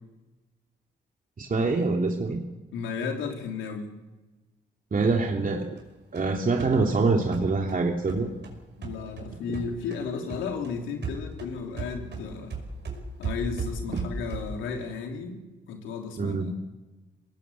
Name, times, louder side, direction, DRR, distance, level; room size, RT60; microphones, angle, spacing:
voice 1, 1.4-2.4 4.9-5.7 6.1-8.3 16.2-16.5, right 3 dB, 45° right, 1 dB, 2.9 m, -25 dB
voice 2, 2.7-4.0 8.8-12.5 13.2-15.4 15.7-16.5, left 5 dB, 85° left, 3 dB, 3.4 m, -34 dB
sound 1, 5.8-10.0 10.3-14.7, right 4 dB, 60° right, 5.7 m, -37 dB
23.5 x 19.0 x 8.3 m, 1.2 s
hypercardioid pair, 40°, 20 cm